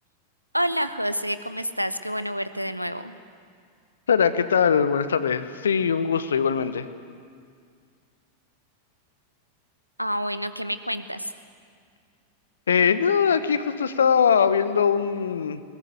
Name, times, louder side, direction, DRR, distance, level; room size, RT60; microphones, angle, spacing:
voice 1, 0.5-3.2 10.0-11.3, equal, 90° right, 12 dB, 1.0 m, -28 dB
voice 2, 4.1-6.9 12.7-15.6, left 7 dB, 70° left, 13 dB, 1.2 m, -21 dB
21.0 x 20.0 x 9.4 m, 2.1 s
figure-of-eight pair, 90°, 0 cm